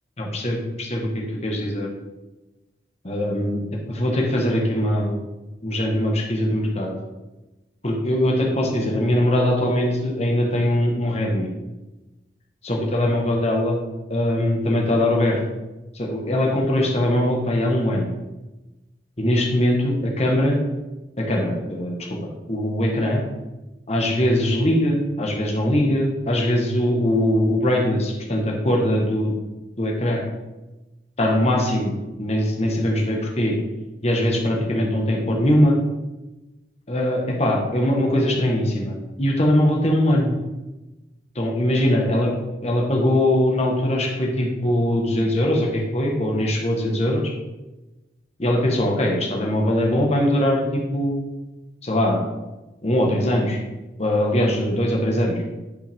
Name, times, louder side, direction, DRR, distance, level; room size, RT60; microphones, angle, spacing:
voice 1, 0.2-1.9 3.0-5.2 5.6-6.9 7.8-11.5 12.6-13.8 14.1-15.4 15.9-18.1 19.2-20.6 21.2-22.0 22.5-23.2 23.9-29.3 29.8-30.2 31.2-31.9 32.2-33.6 34.0-35.8 36.9-38.9 39.2-40.3 41.3-42.3 42.6-47.3 48.4-51.2 51.8-52.2 52.8-53.6 54.0-55.4, left 1 dB, 35° left, -1 dB, 1.3 m, -21 dB
10.0 x 5.7 x 3.5 m, 1.1 s
head